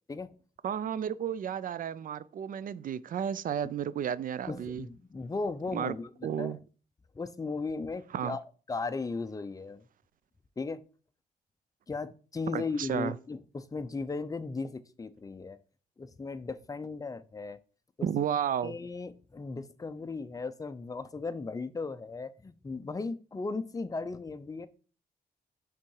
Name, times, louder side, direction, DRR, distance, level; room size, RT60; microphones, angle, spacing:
voice 1, 0.6-4.9 5.7-6.0 6.2-6.6 8.1-8.4 12.5-13.2 18.0-18.8, right 9 dB, 65° right, 0.4 m, -32 dB
voice 2, 4.5-6.6 7.1-8.4 8.7-9.8 10.6-10.8 11.9-15.6 16.0-17.6 18.0-18.1 18.6-24.7, left 4 dB, 20° left, 0.5 m, -36 dB
5.8 x 3.7 x 4.6 m
cardioid pair, 90°, 16 cm